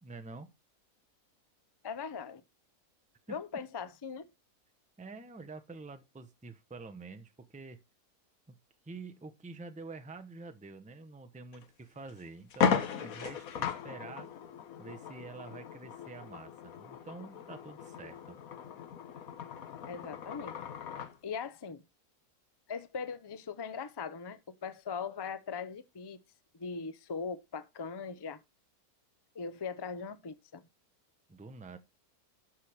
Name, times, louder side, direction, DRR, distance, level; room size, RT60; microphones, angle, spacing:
voice 1, 0.0-0.5 3.3-3.4 5.0-7.8 8.5-8.6 8.8-14.3 14.8-18.4 31.3-31.8, right 3 dB, 5° right, 0.6 m, -47 dB
voice 2, 1.8-2.4 3.3-4.3 19.9-20.5 21.2-21.8 22.7-26.2 26.5-28.4 29.3-30.6, left 5 dB, 35° left, 0.4 m, -40 dB
sound 1, 11.5-11.6 12.1-12.2 12.5-21.2, left 7 dB, 65° left, 1.4 m, -36 dB
12.0 x 4.7 x 4.9 m
omnidirectional pair, 1.7 m